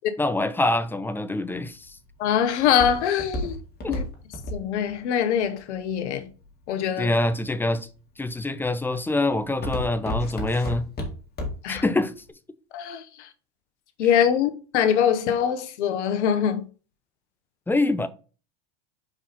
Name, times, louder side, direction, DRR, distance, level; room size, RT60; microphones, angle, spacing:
voice 1, 0.2-2.0 3.8-4.0 7.0-7.9 8.2-10.9 11.7-12.1 17.7-18.1, left 2 dB, 5° left, 0.4 m, -25 dB
Walk footsteps, 1.5-6.6 7.2-7.7 8.2-8.6 8.9-11.8 12.1-12.2, left 1 dB, 30° left, 2.1 m, -32 dB
voice 2, 2.2-3.6 3.9-4.0 4.5-6.3 6.7-7.1 11.6-11.8 12.7-13.3 14.0-16.6, left 8 dB, 80° left, 1.1 m, -23 dB
5.4 x 4.8 x 4.1 m
hypercardioid pair, 95°, 34 cm